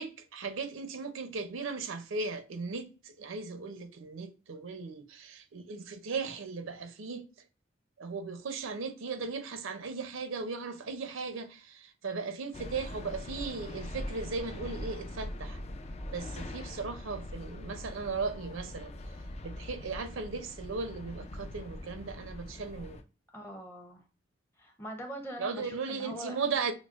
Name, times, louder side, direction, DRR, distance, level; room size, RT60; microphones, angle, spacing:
voice 1, 0.0-7.3 8.0-15.6 16.1-18.9 19.4-23.0 25.4-26.7, right 4 dB, 70° right, 0.5 m, -37 dB
sound 1, 12.5-23.0, left 1 dB, 30° left, 0.3 m, -42 dB
voice 2, 23.3-24.0 24.6-26.4, equal, 10° left, 0.7 m, -42 dB
6.0 x 2.0 x 2.4 m
head